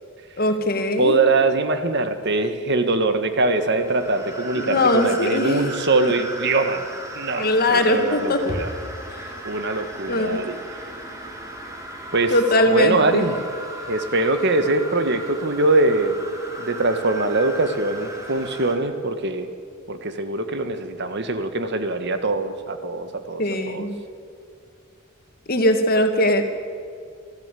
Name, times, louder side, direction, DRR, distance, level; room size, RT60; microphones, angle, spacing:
voice 1, 0.4-1.2 4.5-5.6 6.0-6.1 7.4-8.4 10.1-10.4 12.3-13.2 23.4-24.0 25.5-26.4, left 1 dB, 45° left, 5 dB, 2.1 m, -20 dB
voice 2, 1.0-6.8 7.1-8.7 9.4-10.6 12.1-12.3 12.7-13.4 13.9-16.2 16.6-19.5 19.9-23.8, right 2 dB, 55° right, 8 dB, 1.6 m, -22 dB
sound 1, 3.4-18.8, right 1 dB, 15° right, 3.3 m, -36 dB
23.5 x 15.0 x 8.5 m, 2.3 s
head